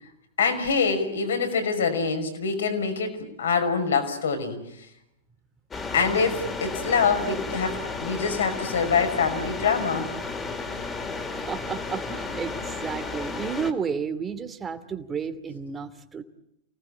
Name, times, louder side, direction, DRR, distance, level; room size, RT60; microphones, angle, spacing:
voice 1, 0.4-4.9 5.9-10.1, left 5 dB, 75° left, 7 dB, 5.8 m, -25 dB
sound 1, 5.7-13.7, left 3 dB, 20° left, 3.6 m, -33 dB
voice 2, 11.5-16.2, right 6 dB, 20° right, 9 dB, 2.7 m, -32 dB
29.0 x 19.0 x 8.8 m, 0.81 s
figure-of-eight pair, 100°, 0 cm